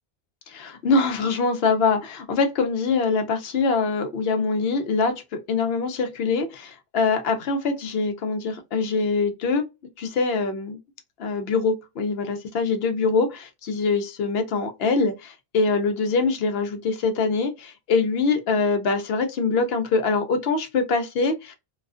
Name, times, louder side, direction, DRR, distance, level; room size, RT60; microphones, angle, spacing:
voice 1, 0.5-9.6 10.0-10.8 11.2-21.5, left 4 dB, 75° left, 0.8 m, -24 dB
2.4 x 2.3 x 2.3 m
omnidirectional pair, 1.0 m